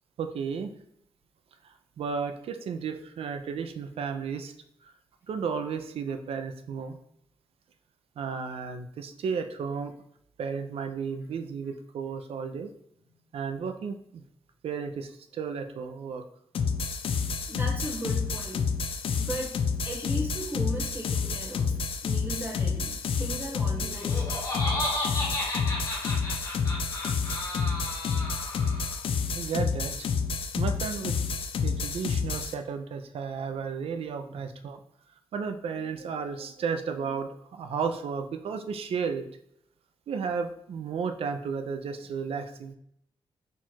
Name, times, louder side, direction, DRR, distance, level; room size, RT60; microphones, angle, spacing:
voice 1, 0.2-0.7 2.0-4.5 5.3-7.0 8.2-9.9 10.4-12.7 13.3-14.2 14.6-16.2 29.3-30.1 30.6-31.2 31.6-34.8 35.3-39.3 40.1-42.7, right 6 dB, 70° right, 8 dB, 0.4 m, -33 dB
sound 1, 16.5-32.5, left 5 dB, 65° left, 0.4 m, -29 dB
voice 2, 17.5-18.7 19.1-24.2 34.3-34.4, right 1 dB, 20° right, -2 dB, 1.1 m, -37 dB
Laughter, 23.8-29.0, left 1 dB, 30° left, 1.4 m, -33 dB
4.4 x 2.4 x 4.3 m, 0.72 s
wide cardioid pair, 115°, 10 cm